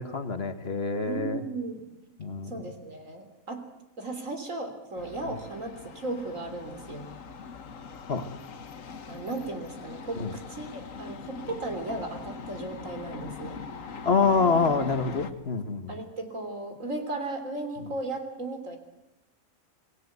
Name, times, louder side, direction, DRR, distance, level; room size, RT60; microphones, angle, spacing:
voice 1, 0.0-1.4 2.2-2.5 8.1-8.2 10.2-10.3 14.0-15.9, left 4 dB, 50° left, 9 dB, 1.5 m, -26 dB
voice 2, 1.1-1.8 2.4-3.6 4.0-7.1 9.1-13.6 15.9-18.8, right 2 dB, 65° right, 6 dB, 3.7 m, -36 dB
sound 1, 5.0-15.3, left 5 dB, 70° left, 1.7 m, -42 dB
26.5 x 19.0 x 8.1 m, 0.95 s
omnidirectional pair, 1.4 m